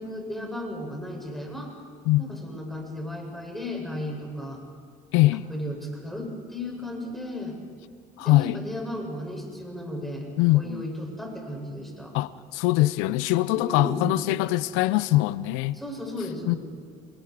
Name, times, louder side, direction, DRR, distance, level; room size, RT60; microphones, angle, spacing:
voice 1, 0.0-1.7 2.2-4.6 5.3-7.6 8.2-10.3 10.5-12.1 13.5-14.2 15.7-16.6, left 1 dB, ahead, 7.7 m, -35 dB
voice 2, 5.1-5.5 8.2-8.6 10.4-10.8 12.1-15.8 16.5-16.6, left 17 dB, 80° left, 0.6 m, -22 dB
27.5 x 22.0 x 4.9 m
supercardioid pair, 75°, 20 cm